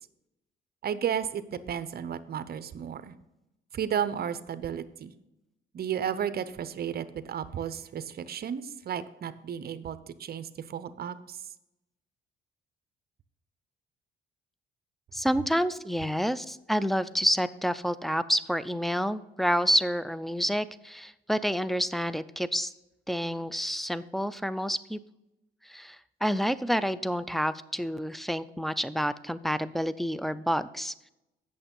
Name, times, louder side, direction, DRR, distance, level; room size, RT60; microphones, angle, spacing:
voice 1, 0.8-3.1 3.7-5.1 5.7-11.4, right 8 dB, 50° right, 13 dB, 0.7 m, -33 dB
voice 2, 15.1-22.7 23.1-25.0 25.7-30.9, equal, ahead, 16 dB, 0.4 m, -29 dB
8.6 x 6.6 x 5.3 m, 0.91 s
cardioid pair, 90°, 20 cm